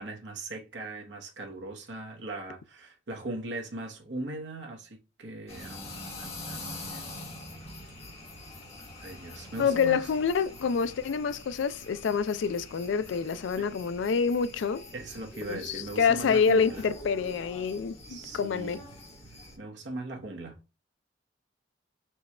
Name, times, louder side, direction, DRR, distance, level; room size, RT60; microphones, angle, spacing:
voice 1, 0.0-7.2 9.0-10.1 13.6-13.7 14.9-16.9 18.1-18.8 19.6-20.6, right 2 dB, 70° right, 1.0 m, -40 dB
sound 1, 5.5-19.6, left 2 dB, 35° left, 1.1 m, -44 dB
voice 2, 9.6-14.8 15.5-18.8, left 6 dB, 80° left, 0.4 m, -27 dB
4.4 x 2.3 x 4.2 m
head